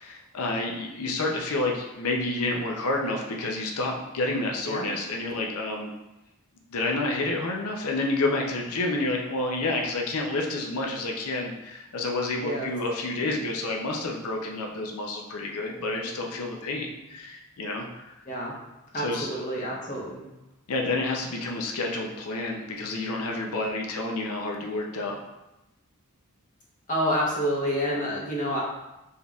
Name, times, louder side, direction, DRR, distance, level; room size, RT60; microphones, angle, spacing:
voice 1, 0.0-5.9 6.7-18.1 18.9-19.3 20.7-25.2, left 2 dB, 70° left, 1 dB, 0.6 m, -29 dB
voice 2, 4.6-5.0 12.4-12.7 18.3-18.5 18.9-20.3 26.9-28.6, equal, 35° left, -5 dB, 1.0 m, -28 dB
4.4 x 3.4 x 2.3 m, 0.95 s
head